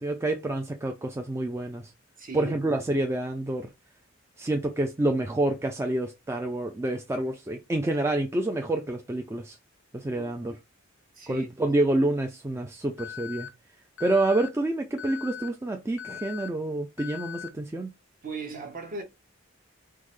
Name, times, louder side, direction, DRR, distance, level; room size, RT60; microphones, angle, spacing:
voice 1, 0.0-1.9 2.3-3.7 4.4-9.6 9.9-10.6 11.3-13.5 14.0-17.9, right 2 dB, 15° right, 0.3 m, -28 dB
voice 2, 2.2-2.8 10.1-10.5 11.1-11.5 18.2-19.0, right 3 dB, 45° right, 1.0 m, -38 dB
Alarm, 13.0-13.5 14.0-14.5 15.0-15.5 16.0-16.5 17.0-17.5, left 9 dB, 85° left, 0.6 m, -39 dB
3.6 x 2.1 x 3.1 m
head